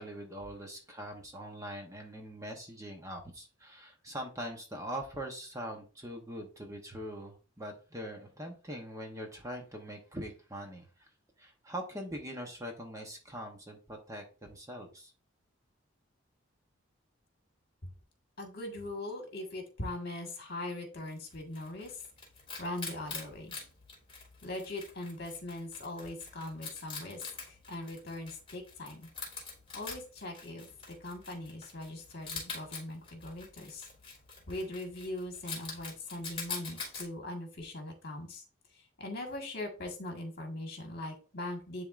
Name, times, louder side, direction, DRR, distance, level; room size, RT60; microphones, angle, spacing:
voice 1, 0.0-11.1 11.4-15.1, equal, 15° right, 2 dB, 1.0 m, -42 dB
voice 2, 18.4-22.0 22.6-23.6 24.4-29.1 29.7-33.9 34.4-38.4 38.7-41.8, left 1 dB, 50° left, 2 dB, 1.7 m, -41 dB
Wild animals, 21.1-37.1, left 4 dB, 25° left, 2.9 m, -45 dB
10.5 x 3.5 x 2.5 m, 0.35 s
head